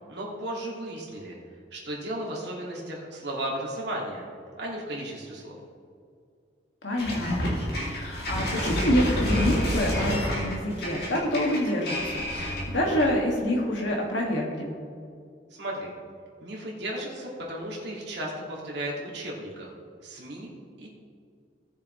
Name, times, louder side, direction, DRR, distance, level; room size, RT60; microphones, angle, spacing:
voice 1, 0.1-1.4 1.7-4.3 4.6-5.6 15.6-15.9 16.4-19.7 20.0-20.5 20.8-20.9, right 1 dB, 65° right, -3 dB, 2.5 m, -35 dB
voice 2, 6.8-14.7, left 1 dB, 80° left, -1 dB, 2.3 m, -27 dB
sound 1, 7.0-13.2, equal, 55° left, 2.9 m, -29 dB
18.0 x 7.0 x 3.3 m, 2.3 s
head